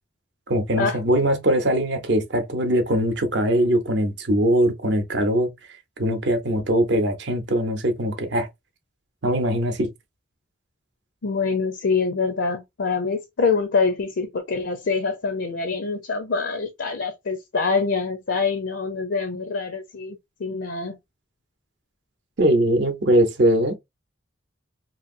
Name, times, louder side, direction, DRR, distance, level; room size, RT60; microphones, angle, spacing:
voice 1, 0.5-5.5 6.0-8.5 9.2-9.9 22.4-23.8, right 1 dB, 60° right, 0.7 m, -21 dB
voice 2, 11.2-21.0, left 4 dB, 70° left, 0.5 m, -25 dB
2.8 x 2.6 x 2.5 m
head